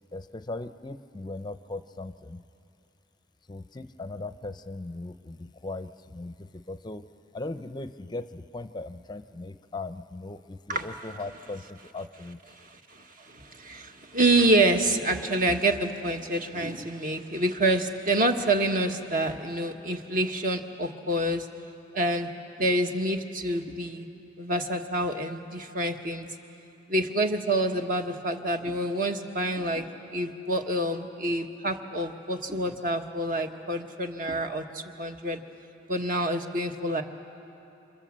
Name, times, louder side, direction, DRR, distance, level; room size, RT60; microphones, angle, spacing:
voice 1, 0.1-2.4 3.5-7.0 7.3-12.4 15.2-15.3, left 2 dB, 25° left, 10 dB, 0.6 m, -38 dB
voice 2, 12.6-21.5 21.9-22.3 22.6-24.1 24.4-26.3 26.9-29.9 30.1-35.4 35.9-37.0, right 1 dB, 45° right, 5 dB, 1.5 m, -27 dB
29.5 x 26.0 x 7.5 m, 2.9 s
head